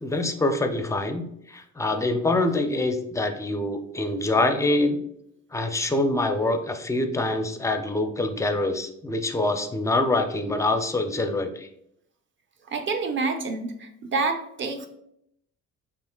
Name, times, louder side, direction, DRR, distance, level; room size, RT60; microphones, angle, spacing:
voice 1, 0.0-5.0 5.5-11.7, left 2 dB, 10° left, 6 dB, 0.4 m, -25 dB
voice 2, 12.7-14.9, right 4 dB, 40° right, 5 dB, 0.7 m, -28 dB
5.7 x 2.4 x 2.2 m, 0.74 s
cardioid pair, 90°, 30 cm